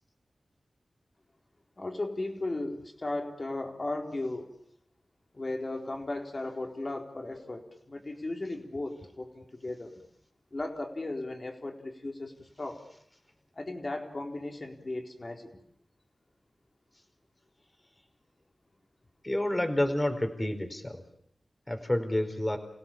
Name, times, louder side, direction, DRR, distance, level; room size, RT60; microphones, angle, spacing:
voice 1, 1.8-4.5 5.3-9.9 10.5-12.8 13.6-15.5, left 2 dB, 45° left, 3 dB, 4.3 m, -36 dB
voice 2, 19.2-21.0 21.7-22.6, left 1 dB, 20° left, 6 dB, 4.5 m, -29 dB
28.5 x 17.0 x 7.3 m, 0.71 s
cardioid pair, 45°, 0 cm